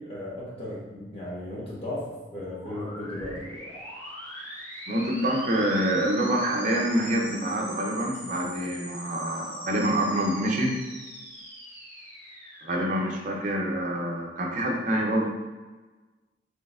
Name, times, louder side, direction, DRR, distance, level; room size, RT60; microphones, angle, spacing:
voice 1, 0.0-3.5, left 1 dB, 35° left, -7 dB, 1.2 m, -36 dB
sound 1, 2.4-14.1, equal, 15° left, 1.1 m, -43 dB
voice 2, 4.9-10.8 12.6-15.3, right 1 dB, 45° right, -1 dB, 0.7 m, -26 dB
4.4 x 3.2 x 2.4 m, 1.2 s
head